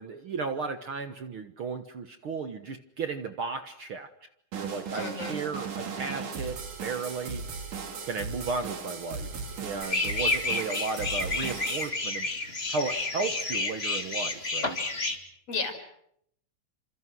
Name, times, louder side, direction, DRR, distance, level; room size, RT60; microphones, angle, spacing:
voice 1, 0.0-4.1 4.5-7.4 8.0-9.3 9.6-14.8, right 4 dB, 55° right, 8 dB, 1.9 m, -34 dB
sound 1, 4.5-11.9, right 5 dB, 80° right, 4.7 m, -37 dB
voice 2, 4.9-5.4 15.5-15.9, left 4 dB, 55° left, 6 dB, 5.8 m, -33 dB
sound 2, 9.8-15.2, left 3 dB, 20° left, 2.5 m, -30 dB
28.5 x 27.0 x 6.3 m, 0.71 s
omnidirectional pair, 3.5 m